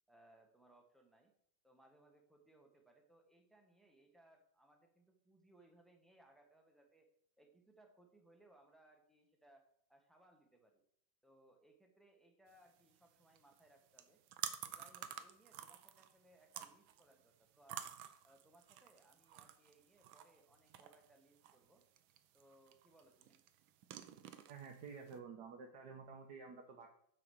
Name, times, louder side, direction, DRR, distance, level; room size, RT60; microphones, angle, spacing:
voice 1, 0.1-1.3 1.6-7.1 7.4-10.8 11.2-14.2 14.6-17.9 18.2-21.8 22.3-23.4, right 1 dB, ahead, 2 dB, 0.7 m, -68 dB
sound 1, 12.5-25.2, right 10 dB, 90° right, 1.4 m, -52 dB
voice 2, 24.5-26.9, right 5 dB, 65° right, 2 dB, 1.3 m, -51 dB
7.8 x 4.4 x 6.3 m, 0.70 s
omnidirectional pair, 2.1 m